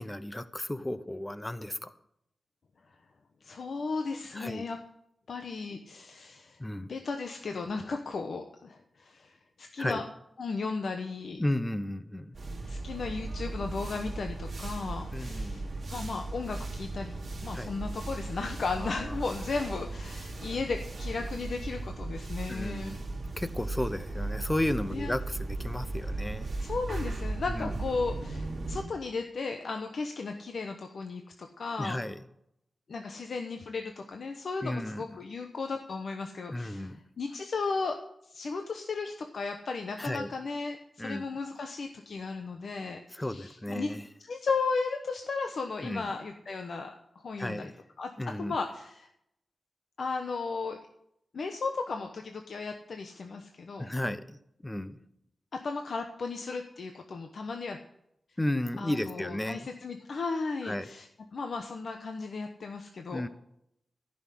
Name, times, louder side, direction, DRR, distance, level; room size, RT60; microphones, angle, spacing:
voice 1, 0.0-1.9 4.3-4.6 6.6-6.9 9.8-10.0 11.4-12.3 15.1-15.9 17.5-17.7 18.8-18.9 22.5-23.1 23.4-26.5 27.6-27.7 31.8-32.2 34.6-35.0 36.5-37.0 40.0-40.3 41.0-41.2 43.1-44.1 45.8-46.1 47.4-47.7 48.2-48.5 53.8-54.4 54.6-55.0 58.4-59.7 60.6-60.9 63.1-63.3, left 1 dB, 10° left, 13 dB, 0.7 m, -33 dB
voice 2, 3.4-4.8 5.3-10.0 10.4-11.4 12.7-22.9 24.9-25.1 26.6-32.0 32.9-38.0 38.2-43.9 44.2-47.7 48.0-48.1 48.4-49.1 50.0-50.8 51.3-53.9 55.5-57.8 58.8-63.3, left 4 dB, 60° left, 4 dB, 1.0 m, -35 dB
sound 1, 12.3-28.8, right 2 dB, 40° right, 2.7 m, -37 dB
14.5 x 6.3 x 7.7 m, 0.76 s
wide cardioid pair, 165°, 0 cm